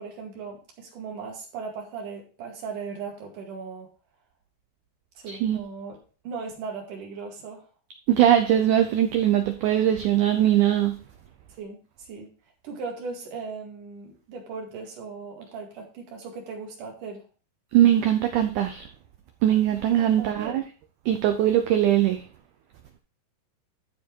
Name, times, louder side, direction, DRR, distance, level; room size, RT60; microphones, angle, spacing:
voice 1, 0.0-3.9 5.2-6.0 6.2-7.7 11.6-12.3 12.6-17.2 20.0-20.6, right 5 dB, 60° right, 1 dB, 3.4 m, -38 dB
voice 2, 5.3-5.6 8.1-11.0 17.7-18.9 19.4-20.6 21.1-22.2, right 11 dB, 85° right, 7 dB, 1.7 m, -21 dB
12.5 x 4.5 x 4.5 m, 0.37 s
omnidirectional pair, 4.5 m